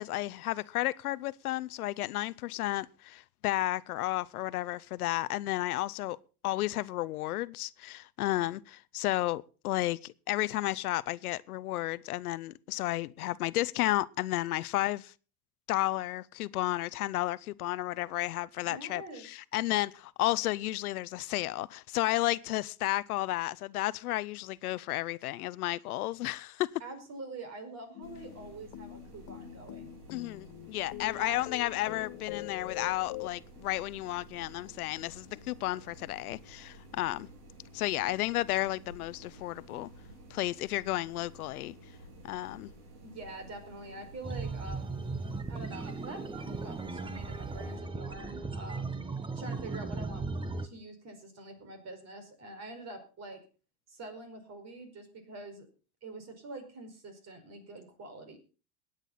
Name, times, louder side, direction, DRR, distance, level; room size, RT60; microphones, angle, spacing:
voice 1, 0.0-6.2 6.4-15.1 15.7-26.7 30.1-37.3 37.7-39.9 40.3-41.7 42.2-42.7, left 16 dB, 85° left, 0.7 m, -32 dB
voice 2, 18.6-19.3 26.8-29.9 31.0-31.5 43.0-45.0 45.5-49.0 49.3-50.3 50.6-53.4 53.9-55.7 56.0-58.4, right 2 dB, 35° right, 4.9 m, -45 dB
sound 1, 27.9-33.3, left 16 dB, 45° left, 0.9 m, -44 dB
sound 2, 28.0-47.8, right 1 dB, 80° right, 3.6 m, -53 dB
sound 3, 44.2-50.7, right 3 dB, 10° right, 1.0 m, -37 dB
20.0 x 9.0 x 4.0 m
hypercardioid pair, 100°, 44 cm